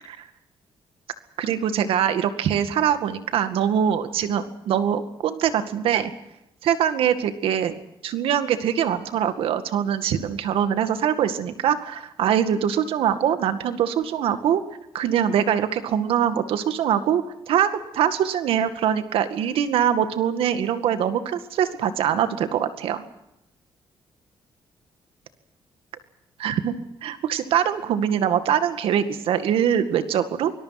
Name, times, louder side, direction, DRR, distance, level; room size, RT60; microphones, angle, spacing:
voice 1, 1.4-6.1 6.6-7.7 8.0-14.6 14.9-23.0 26.4-26.7 27.0-30.5, right 9 dB, 90° right, 10 dB, 2.1 m, -23 dB
25.0 x 21.5 x 6.0 m, 0.85 s
cardioid pair, 130°, 9 cm